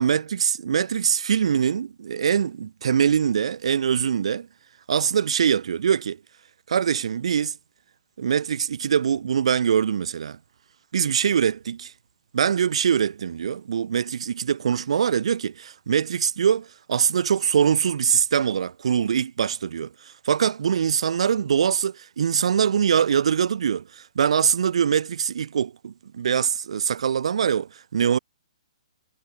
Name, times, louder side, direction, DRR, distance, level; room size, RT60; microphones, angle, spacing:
voice 1, 0.0-4.5 4.9-6.2 6.7-7.5 8.2-10.4 10.9-11.9 12.3-19.9 20.2-28.2, right 8 dB, 65° right, 0.7 m, -23 dB
figure-of-eight pair, 130°, 3 cm